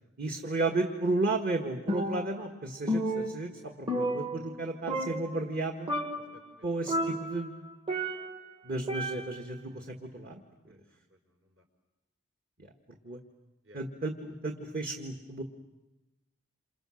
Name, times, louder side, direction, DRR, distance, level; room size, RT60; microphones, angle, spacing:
voice 1, 0.2-5.9 6.6-7.7 8.6-10.4 12.6-12.7 13.0-13.2 13.7-15.4, right 2 dB, 45° right, 2 dB, 1.6 m, -33 dB
Percussion, 1.9-2.6 2.9-4.6 4.9-5.6 5.9-6.4 6.9-8.5 8.9-9.5, right 1 dB, 25° right, 1.2 m, -32 dB
voice 2, 6.3-7.0 10.7-11.6 13.6-13.8, equal, 60° right, 3 dB, 5.0 m, -61 dB
28.0 x 27.5 x 6.4 m, 1.0 s
head